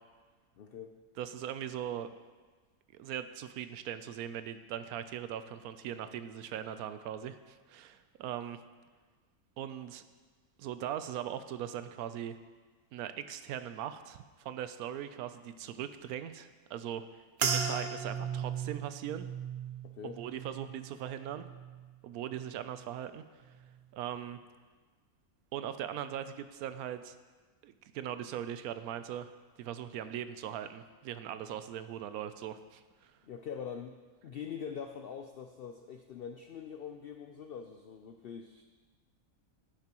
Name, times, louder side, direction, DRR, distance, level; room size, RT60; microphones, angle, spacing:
voice 1, 0.6-1.0 19.8-20.2 33.2-34.0 34.2-38.6, left 7 dB, 85° left, 5 dB, 0.5 m, -43 dB
voice 2, 1.2-2.1 2.9-8.6 9.6-10.0 10.6-12.4 12.9-17.0 17.4-19.3 20.0-21.5 22.0-23.4 23.9-24.4 25.5-27.1 27.6-29.3 29.6-33.1, right 10 dB, 80° right, 11 dB, 1.0 m, -40 dB
sound 1, 17.4-21.9 22.3-22.9 23.5-23.7, right 6 dB, 50° right, 0.9 m, -37 dB
11.5 x 9.5 x 3.0 m, 1.4 s
omnidirectional pair, 1.5 m